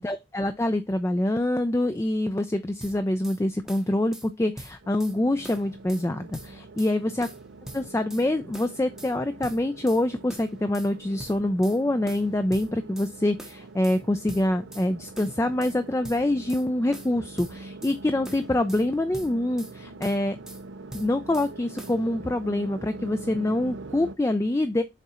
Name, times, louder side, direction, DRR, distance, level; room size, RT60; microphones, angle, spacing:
voice 1, 0.0-7.3 7.7-20.4 20.9-24.8, left 1 dB, 15° left, 0.3 m, -25 dB
sound 1, 2.8-3.4 3.7-4.3 4.6-5.2 5.4-6.1 6.3-6.9 7.2-8.3 8.5-9.1 9.4-10.0 10.3-10.9 11.2-11.8 12.1-13.1 13.4-14.0 14.3-14.9 15.2-15.8 16.0-16.7 16.9-18.0 18.2-18.9 19.1-19.7 20.0-20.6 20.9-21.5 21.8-22.0, right 1 dB, 5° right, 0.7 m, -43 dB
sound 2, 4.8-24.2, right 3 dB, 80° right, 0.6 m, -44 dB
6.7 x 3.7 x 4.2 m
head